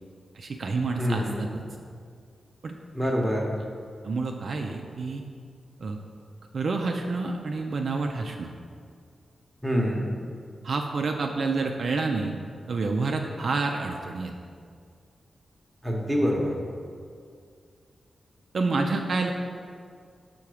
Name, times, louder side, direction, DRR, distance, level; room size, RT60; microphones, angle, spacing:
voice 1, 0.3-1.5 2.6-2.7 3.0-3.1 4.0-5.2 5.8-6.0 6.5-8.5 10.6-12.4 12.7-14.3 18.5-19.3, right 3 dB, 60° right, 3 dB, 0.4 m, -28 dB
voice 2, 1.0-1.4 2.9-3.5 9.6-10.0 15.8-16.5, equal, 5° right, -2 dB, 0.9 m, -25 dB
5.8 x 3.8 x 4.8 m, 2.2 s
wide cardioid pair, 100°, 0 cm